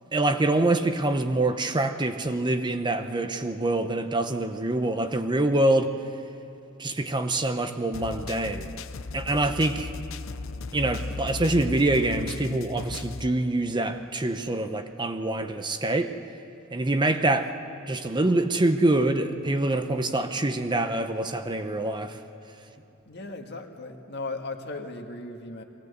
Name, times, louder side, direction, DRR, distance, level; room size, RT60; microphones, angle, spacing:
voice 1, 0.1-5.9 6.8-8.7 9.1-9.9 10.7-16.1 16.7-17.5 17.9-22.2, right 2 dB, 20° right, 7 dB, 0.7 m, -25 dB
sound 1, 7.9-13.3, left 3 dB, 70° left, 0.6 m, -36 dB
voice 2, 23.1-25.6, left 2 dB, 55° left, 3 dB, 1.7 m, -37 dB
22.0 x 16.5 x 8.1 m, 3.0 s
head